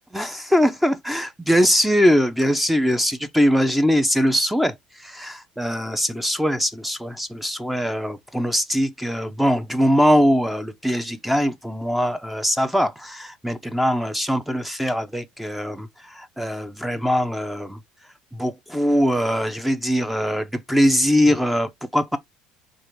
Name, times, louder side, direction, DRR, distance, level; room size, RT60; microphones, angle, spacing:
voice 1, 0.1-17.8 18.3-22.2, equal, 5° right, 0.6 m, -22 dB
4.8 x 2.5 x 3.1 m
supercardioid pair, 80°, 3 cm